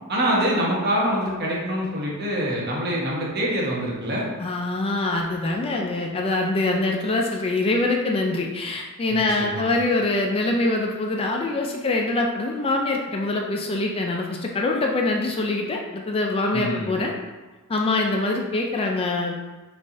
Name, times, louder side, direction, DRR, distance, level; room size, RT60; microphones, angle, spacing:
voice 1, 0.1-4.3 9.1-9.7 16.5-16.9, equal, 45° right, -4 dB, 1.1 m, -25 dB
voice 2, 4.4-17.1 17.7-19.4, left 2 dB, 25° left, 1 dB, 0.4 m, -24 dB
5.2 x 3.4 x 2.7 m, 1.2 s
head